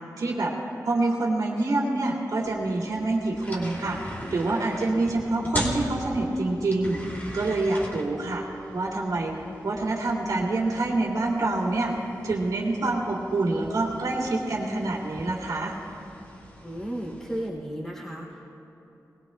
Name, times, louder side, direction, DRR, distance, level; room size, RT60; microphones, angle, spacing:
voice 1, 0.2-0.5 0.8-7.0 7.3-8.4 8.7-9.3 9.6-15.7, right 2 dB, 75° right, -2 dB, 2.4 m, -26 dB
sound 1, 2.4-17.5, equal, 30° left, 2.4 m, -40 dB
voice 2, 16.6-18.5, right 1 dB, 5° left, -5 dB, 2.6 m, -34 dB
20.5 x 20.0 x 2.2 m, 2.9 s
wide cardioid pair, 95°, 7 cm